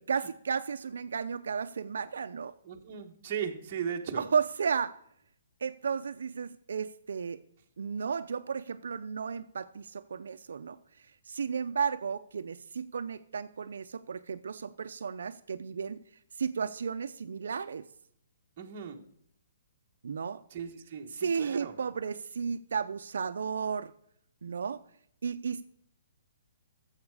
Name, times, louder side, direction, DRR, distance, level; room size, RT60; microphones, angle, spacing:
voice 1, 0.1-2.5 4.2-5.0 5.6-7.4 7.8-10.8 11.3-16.0 16.4-17.8 20.0-20.4 21.2-23.9 24.4-24.8 25.2-25.6, right 6 dB, 75° right, 9 dB, 0.5 m, -33 dB
voice 2, 2.6-4.2 18.6-19.0 20.5-21.7, right 7 dB, 30° right, 1 dB, 1.3 m, -37 dB
13.5 x 7.3 x 4.8 m, 0.68 s
hypercardioid pair, 175°, 0 cm